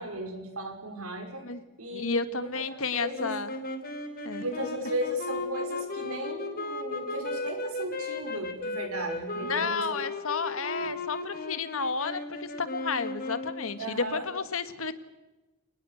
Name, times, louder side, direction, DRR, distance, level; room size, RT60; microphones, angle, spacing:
voice 1, 0.0-1.4 1.8-2.1 2.4-3.3 4.4-9.8 10.4-10.5 10.8-10.9 13.8-14.2, right 1 dB, 85° right, 4 dB, 5.4 m, -35 dB
voice 2, 1.9-3.5 4.2-4.4 9.4-14.9, left 4 dB, 70° left, 11 dB, 1.7 m, -32 dB
sound 1, 3.1-13.9, left 2 dB, 45° left, 3.9 m, -36 dB
29.0 x 20.0 x 6.5 m, 1.1 s
head